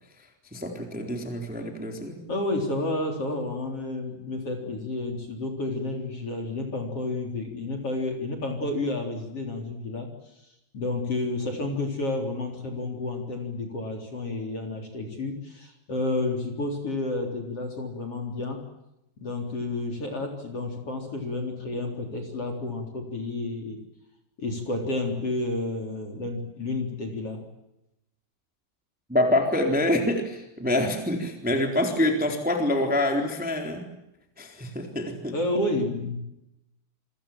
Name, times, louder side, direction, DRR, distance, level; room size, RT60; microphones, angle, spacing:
voice 1, 0.5-2.2 29.1-33.8 34.4-35.3, left 1 dB, ahead, 3 dB, 3.1 m, -26 dB
voice 2, 2.3-10.1 10.7-18.6 19.2-23.8 24.4-27.4 35.3-36.2, left 2 dB, 35° left, 3 dB, 4.2 m, -30 dB
28.5 x 24.5 x 7.5 m, 0.88 s
omnidirectional pair, 5.1 m